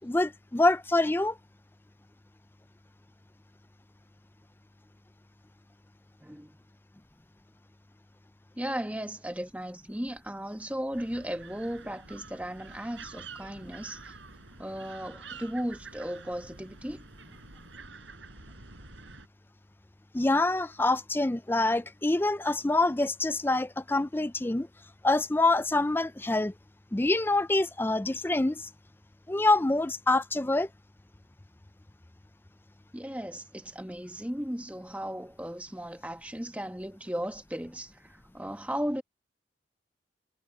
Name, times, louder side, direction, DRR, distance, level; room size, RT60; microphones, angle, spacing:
voice 1, 0.0-1.4 20.1-24.7 25.0-26.5 26.9-28.7 29.3-30.7, left 2 dB, 10° left, 0.4 m, -26 dB
voice 2, 6.2-6.6 8.6-14.2 14.6-17.0 32.9-39.0, equal, 10° right, 1.2 m, -36 dB
sound 1, 10.9-19.3, right 4 dB, 90° right, 5.9 m, -48 dB
head